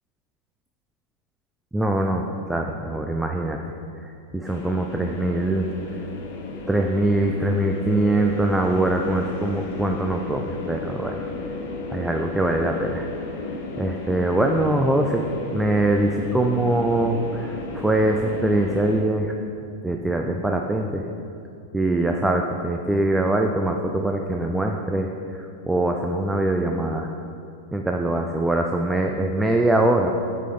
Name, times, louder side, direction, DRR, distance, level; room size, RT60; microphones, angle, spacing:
voice 1, 1.7-3.6 4.3-5.7 6.7-11.2 11.9-13.1 13.8-15.2 15.5-19.3 19.8-21.0 21.7-25.1 25.4-27.1 27.7-30.1, right 1 dB, 5° right, 2 dB, 0.4 m, -23 dB
sound 1, 4.4-19.0, left 3 dB, 50° left, 0.9 m, -34 dB
8.2 x 5.6 x 3.6 m, 2.5 s
figure-of-eight pair, 90°, 0 cm